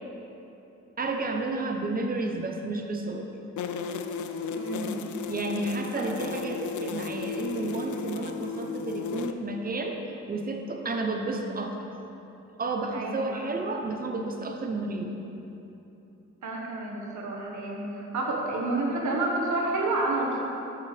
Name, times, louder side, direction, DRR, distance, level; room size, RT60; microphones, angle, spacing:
voice 1, 1.0-3.3 5.3-10.0 10.3-11.8 12.6-15.1, right 2 dB, 30° right, 2 dB, 0.7 m, -31 dB
sound 1, 3.6-9.3, left 6 dB, 85° left, 0.4 m, -34 dB
voice 2, 4.5-5.0 6.0-6.1 12.9-13.5 16.4-20.4, right 2 dB, 85° right, -2 dB, 1.4 m, -29 dB
11.5 x 5.7 x 3.4 m, 3.0 s
wide cardioid pair, 140°, 29 cm